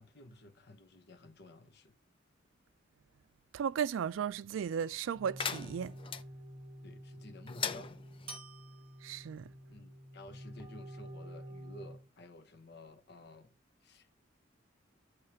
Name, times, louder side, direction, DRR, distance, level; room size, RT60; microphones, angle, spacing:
voice 1, 0.0-1.9 6.8-8.0 9.7-13.5 13.8-14.1, left 2 dB, 60° left, 0.9 m, -53 dB
voice 2, 3.5-5.9 9.0-9.4, right 7 dB, 85° right, 0.3 m, -35 dB
sound 1, 4.7-5.4 8.3-9.7, right 4 dB, 30° right, 1.5 m, -54 dB
sound 2, 5.1-12.0, equal, 10° right, 1.6 m, -49 dB
sound 3, 5.4-6.2 7.5-8.4, left 6 dB, 25° left, 0.4 m, -39 dB
6.6 x 3.2 x 5.6 m
head